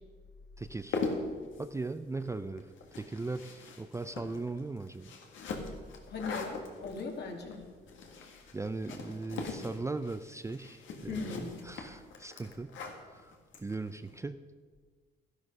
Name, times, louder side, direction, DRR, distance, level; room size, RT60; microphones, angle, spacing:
voice 1, 0.6-1.0 1.6-5.1 8.5-12.8 13.1-13.3 13.6-14.4, right 3 dB, 15° right, 10 dB, 0.5 m, -38 dB
sound 1, 0.7-14.2, left 4 dB, 75° left, 1.9 m, -41 dB
voice 2, 6.1-7.6 11.1-11.6, left 4 dB, 60° left, 2 dB, 2.4 m, -39 dB
12.5 x 11.0 x 5.4 m, 1.5 s
cardioid pair, 90°, 20 cm